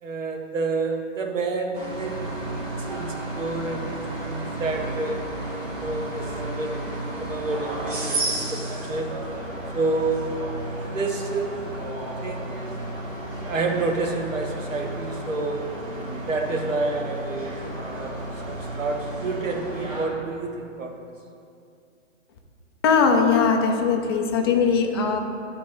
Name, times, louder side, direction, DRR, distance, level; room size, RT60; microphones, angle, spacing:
voice 1, 0.0-5.3 5.8-6.9 7.2-9.2 9.7-10.3 10.9-11.8 12.2-12.8 13.5-15.7 16.3-18.1 18.4-21.0, right 3 dB, 80° right, 3 dB, 1.4 m, -29 dB
sound 1, 1.7-20.0, right 1 dB, 40° right, 2.0 m, -32 dB
voice 2, 22.8-25.2, left 5 dB, 20° left, 3 dB, 0.5 m, -20 dB
11.5 x 3.8 x 5.5 m, 2.4 s
hypercardioid pair, 140°, 38 cm